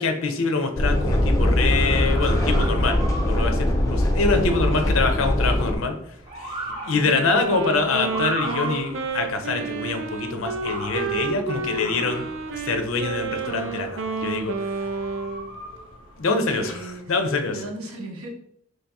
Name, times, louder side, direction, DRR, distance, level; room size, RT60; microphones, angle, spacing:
voice 1, 0.0-6.0 6.4-6.6 6.8-12.3 12.5-14.6 16.2-17.6, left 3 dB, 70° left, 6 dB, 0.6 m, -25 dB
sound 1, 0.8-5.8, left 1 dB, 15° left, 0.4 m, -21 dB
Motor vehicle (road) / Siren, 1.7-17.3, right 1 dB, 20° right, 1.2 m, -38 dB
voice 2, 4.3-4.6 6.9-7.2 11.4-12.3 16.6-18.3, right 2 dB, 85° right, 1 dB, 0.9 m, -38 dB
Wind instrument woodwind instrument, 7.3-15.5, right 4 dB, 60° right, 0.4 m, -30 dB
3.2 x 2.8 x 3.4 m, 0.67 s
head